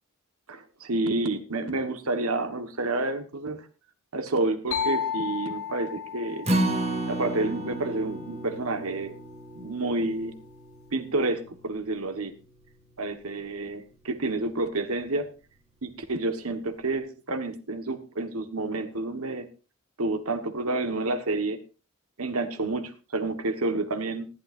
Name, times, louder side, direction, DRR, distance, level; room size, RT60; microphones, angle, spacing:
voice 1, 0.5-3.6 4.1-6.5 7.1-9.1 9.5-10.3 10.9-12.3 13.0-15.3 15.8-19.5 20.0-21.6 22.2-24.3, right 2 dB, 80° right, 8 dB, 1.5 m, -29 dB
sound 1, 4.7-8.4, left 8 dB, 85° left, 3.6 m, -34 dB
Acoustic guitar, 6.4-12.8 13.2-13.3 13.7-13.8, right 1 dB, 30° right, 2.0 m, -32 dB
19.5 x 12.0 x 2.6 m, 0.33 s
head